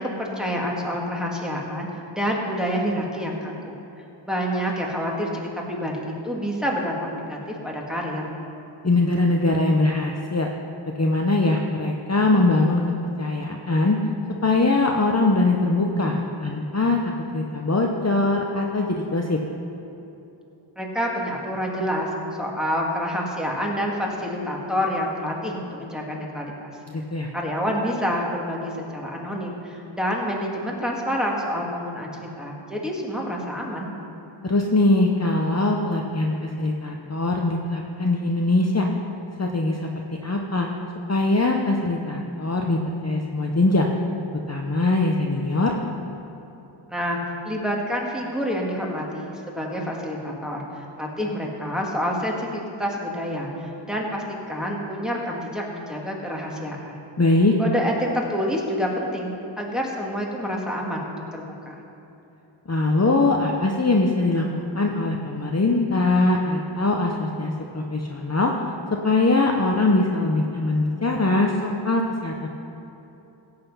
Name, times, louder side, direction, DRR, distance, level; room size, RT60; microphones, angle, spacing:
voice 1, 0.0-3.8 4.2-7.4 7.6-8.3 20.8-22.1 22.4-26.7 27.3-33.9 46.9-47.2 47.4-57.0 57.6-61.8, equal, ahead, -2 dB, 2.1 m, -28 dB
voice 2, 8.8-10.5 11.0-12.8 13.2-14.0 14.4-19.4 26.9-27.3 34.4-38.9 39.4-40.7 41.1-43.9 44.5-45.8 57.2-57.5 62.7-68.5 69.0-72.5, left 2 dB, 30° left, 1 dB, 0.9 m, -22 dB
16.0 x 7.9 x 5.5 m, 3.0 s
wide cardioid pair, 55°, 49 cm